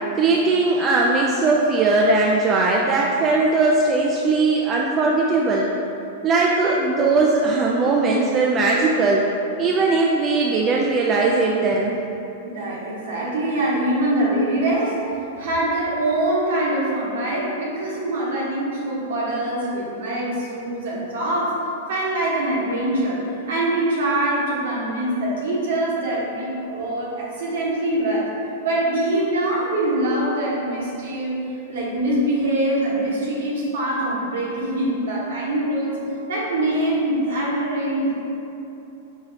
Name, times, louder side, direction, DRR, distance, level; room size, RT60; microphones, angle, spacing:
voice 1, 0.2-5.7 6.2-9.3 9.6-12.0, right 3 dB, 30° right, -2 dB, 0.3 m, -19 dB
voice 2, 12.5-15.0 15.3-21.6 21.9-28.3 28.6-31.4 31.7-36.0 36.3-38.1, right 1 dB, 60° right, -5 dB, 1.0 m, -23 dB
5.4 x 2.8 x 2.7 m, 2.9 s
figure-of-eight pair, 95°, 0 cm